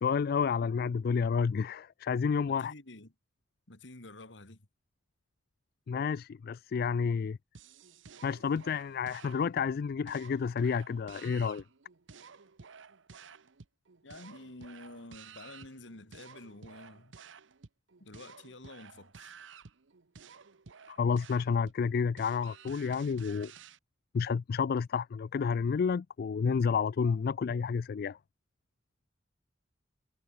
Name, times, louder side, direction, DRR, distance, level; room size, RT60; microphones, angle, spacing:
voice 1, 0.0-2.7 5.9-7.4 8.2-11.6 20.9-23.5 24.1-28.2, left 6 dB, 55° left, 0.3 m, -30 dB
voice 2, 2.5-3.1 3.7-4.7 14.0-17.2 18.0-19.4, left 2 dB, 70° left, 2.3 m, -49 dB
sound 1, 7.5-23.8, right 6 dB, 80° right, 0.9 m, -53 dB
head